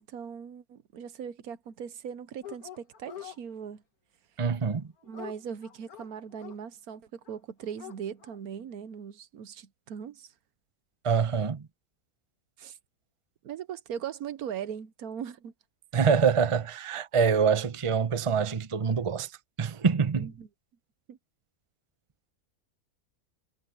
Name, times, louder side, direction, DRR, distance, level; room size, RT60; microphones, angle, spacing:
voice 1, 0.0-3.8 5.0-10.3 12.6-12.8 13.4-15.5 20.2-20.5 21.1-21.2, right 8 dB, 75° right, 1.3 m, -39 dB
Dog, 2.4-3.4 4.5-6.6 7.3-7.4 7.6-8.4, left 10 dB, 70° left, 2.0 m, -45 dB
voice 2, 4.4-4.9 11.0-11.6 15.9-19.3 19.6-20.3, right 6 dB, 25° right, 0.7 m, -25 dB
omnidirectional pair, 1.6 m